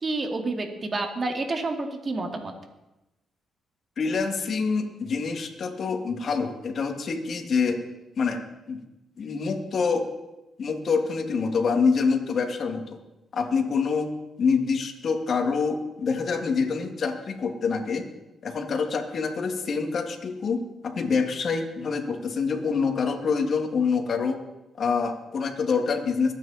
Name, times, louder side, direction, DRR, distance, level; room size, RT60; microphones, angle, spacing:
voice 1, 0.0-2.5, right 2 dB, 40° right, 3 dB, 2.6 m, -29 dB
voice 2, 4.0-7.8 8.2-8.4 8.7-8.8 9.2-10.1 10.6-13.0 13.3-18.1 18.4-24.4 24.8-26.3, left 5 dB, 60° left, 4 dB, 2.3 m, -26 dB
22.5 x 9.4 x 4.3 m, 0.97 s
supercardioid pair, 65°, 0 cm